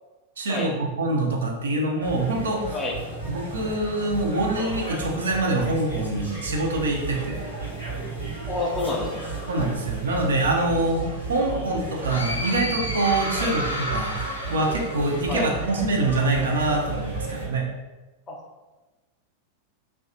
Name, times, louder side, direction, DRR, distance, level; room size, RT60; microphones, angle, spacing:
voice 1, 0.4-2.8 3.3-7.4 9.5-17.6, right 2 dB, 65° right, 0 dB, 0.4 m, -25 dB
sound 1, 2.0-17.5, right 3 dB, 90° right, 1.0 m, -34 dB
voice 2, 2.7-3.2 8.5-9.3 11.5-11.7 13.3-13.7 15.3-15.5 18.3-18.4, left 2 dB, 20° left, 0 dB, 0.5 m, -29 dB
sound 2, 12.1-15.7, left 1 dB, 85° left, 0.5 m, -32 dB
2.6 x 2.2 x 2.6 m, 1.2 s
figure-of-eight pair, 90°, 0 cm